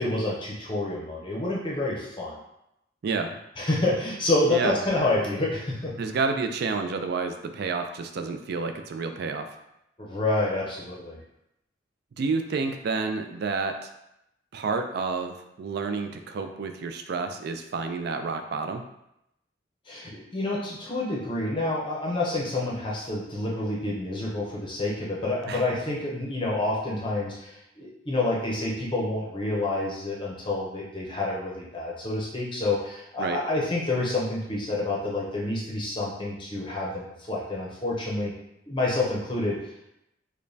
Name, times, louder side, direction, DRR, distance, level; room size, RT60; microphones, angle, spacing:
voice 1, 0.0-2.4 3.6-5.9 10.0-11.2 19.9-38.3 38.7-39.6, left 2 dB, 25° left, -4 dB, 0.6 m, -28 dB
voice 2, 3.0-3.4 4.5-4.8 6.0-9.5 12.2-13.9 14.5-18.8 25.5-25.6 33.2-33.4, right 4 dB, 55° right, 6 dB, 0.4 m, -29 dB
5.0 x 2.1 x 2.7 m, 0.83 s
head